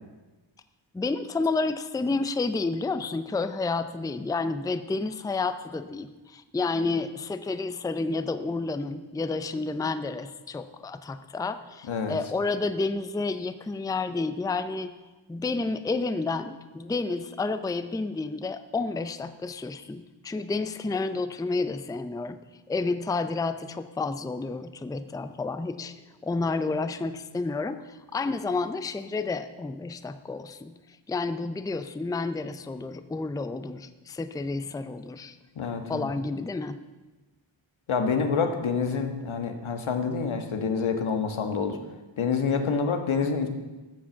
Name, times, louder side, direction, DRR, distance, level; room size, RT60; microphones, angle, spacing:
voice 1, 0.9-14.9 15.3-22.4 22.7-25.9 26.2-30.7 31.1-35.4 35.9-36.8, left 3 dB, 10° left, 11 dB, 0.4 m, -30 dB
voice 2, 11.9-12.2 35.5-36.1 37.9-41.8 42.2-43.5, left 5 dB, 85° left, 6 dB, 1.5 m, -27 dB
13.0 x 7.6 x 7.1 m, 1.2 s
wide cardioid pair, 135°, 47 cm